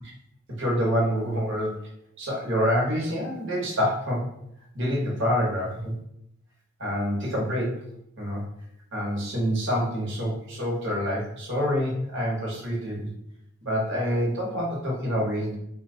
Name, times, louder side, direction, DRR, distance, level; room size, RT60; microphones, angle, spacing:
voice 1, 0.6-1.9 2.2-4.3 4.7-5.9 6.8-7.8 8.2-8.4 8.9-13.1 13.6-15.6, equal, 55° right, -3 dB, 1.1 m, -27 dB
2.9 x 2.3 x 3.8 m, 0.76 s
head